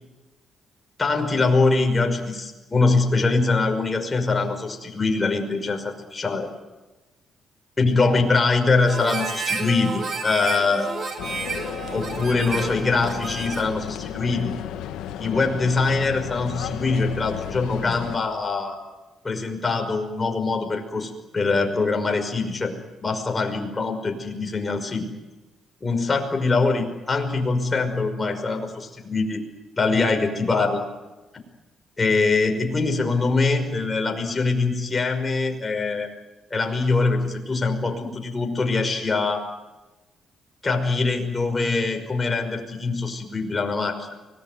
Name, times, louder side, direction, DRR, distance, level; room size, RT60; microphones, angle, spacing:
voice 1, 1.0-6.5 7.8-10.9 11.9-14.5 15.2-18.8 19.2-22.7 23.0-25.1 25.8-29.4 29.8-30.9 32.0-36.1 36.5-39.4 40.6-44.2, left 3 dB, 25° left, 4 dB, 5.5 m, -23 dB
Harmonica, 8.9-13.8, right 4 dB, 45° right, 4.8 m, -31 dB
sound 1, 11.2-18.2, left 10 dB, 90° left, 1.5 m, -33 dB
24.5 x 19.5 x 9.4 m, 1.1 s
cardioid pair, 90°, 0 cm